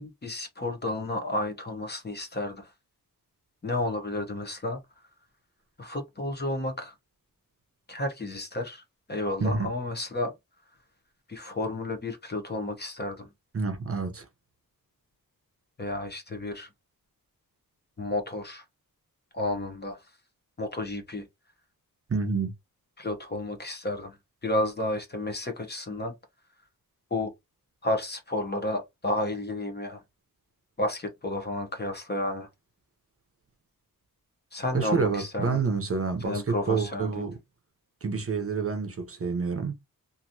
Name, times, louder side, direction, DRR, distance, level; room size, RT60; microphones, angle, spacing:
voice 1, 0.0-2.7 3.6-4.8 5.8-6.9 7.9-8.8 9.1-10.3 11.3-13.3 15.8-16.7 18.0-18.6 19.3-20.1 20.6-21.3 23.0-24.2 24.4-26.1 27.1-27.3 27.8-30.0 30.8-32.5 34.5-35.6 36.2-37.3, left 2 dB, 30° left, 0.7 m, -31 dB
voice 2, 13.5-14.3 22.1-22.5 34.7-37.4 38.0-39.7, right 4 dB, 40° right, 0.7 m, -28 dB
2.9 x 2.6 x 2.6 m
wide cardioid pair, 165°, 36 cm